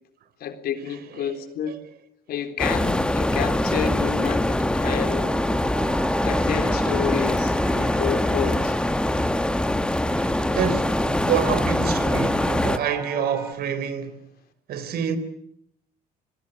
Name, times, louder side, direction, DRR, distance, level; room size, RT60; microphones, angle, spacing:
voice 1, 0.4-1.7 2.3-5.4 6.2-8.8, left 8 dB, 65° left, 3.8 m, -30 dB
sound 1, 2.6-12.8, left 1 dB, 5° left, 1.2 m, -23 dB
sound 2, 3.0-13.5, right 2 dB, 10° right, 4.4 m, -39 dB
voice 2, 9.7-14.2 14.7-15.2, right 8 dB, 65° right, 3.7 m, -28 dB
27.5 x 20.5 x 8.1 m
cardioid pair, 110°, 17 cm